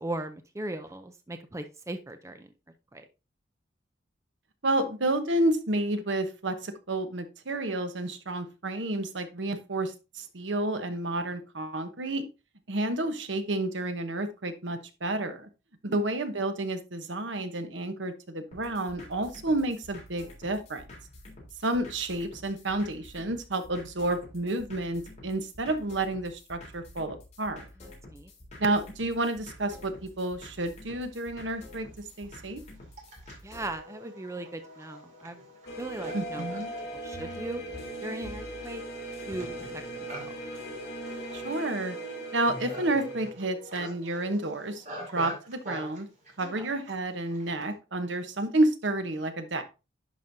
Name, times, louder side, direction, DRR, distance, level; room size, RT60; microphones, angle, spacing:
voice 1, 0.0-2.5 2.9-3.1 15.9-16.0 27.8-28.3 33.4-35.4 35.8-36.5 37.0-37.6 38.0-38.8 39.3-40.3 45.0-45.2 46.4-46.7, right 2 dB, 15° right, 8 dB, 0.5 m, -38 dB
voice 2, 4.6-12.2 12.7-15.5 15.8-20.8 21.6-27.7 28.6-31.9 32.2-32.6 36.1-36.7 41.3-42.0 42.3-44.8 45.1-46.1 46.4-49.6, right 2 dB, 75° right, 8 dB, 1.0 m, -30 dB
sound 1, 18.5-33.8, left 1 dB, 35° left, 3.6 m, -49 dB
Livestock farm animals working animals, 31.0-31.1 31.8-47.7, equal, 40° right, 2.3 m, -46 dB
sound 2, 35.7-43.3, right 1 dB, 55° left, 2.2 m, -38 dB
10.5 x 5.1 x 2.7 m, 0.29 s
head